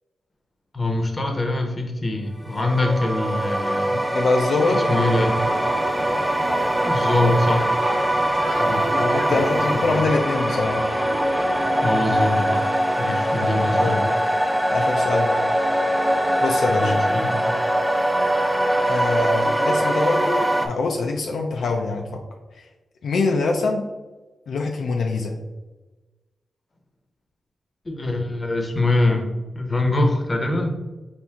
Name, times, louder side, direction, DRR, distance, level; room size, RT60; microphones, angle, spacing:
voice 1, 0.7-3.9 4.6-5.5 6.9-7.8 8.7-8.9 9.3-9.4 9.7-10.0 11.8-12.7 13.0-14.0 16.7-17.4 27.8-30.8, left 2 dB, 35° left, 3 dB, 0.8 m, -23 dB
sound 1, 2.5-20.7, right 1 dB, 5° right, 0.4 m, -22 dB
voice 2, 3.9-4.9 8.6-10.8 13.7-14.0 14.7-15.4 16.4-16.9 18.9-22.2 22.6-22.7 23.0-23.9 24.5-25.4, left 3 dB, 75° left, 1 dB, 0.4 m, -24 dB
sound 2, 4.9-12.3, right 2 dB, 85° right, 0.8 m, -33 dB
4.3 x 2.6 x 3.5 m, 1.2 s
cardioid pair, 75°, 0 cm